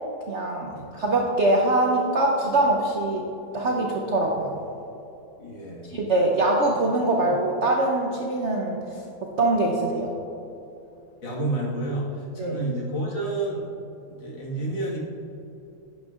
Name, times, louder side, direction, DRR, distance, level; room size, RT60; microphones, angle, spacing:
voice 1, 0.3-3.2 3.5-4.5 5.8-8.8 9.4-10.1 12.4-12.6, right 2 dB, 60° right, -1 dB, 0.7 m, -23 dB
voice 2, 5.4-5.9 7.2-7.3 11.2-13.6 14.1-15.0, right 2 dB, 60° left, -4 dB, 2.3 m, -30 dB
11.5 x 9.4 x 2.4 m, 2.8 s
omnidirectional pair, 2.3 m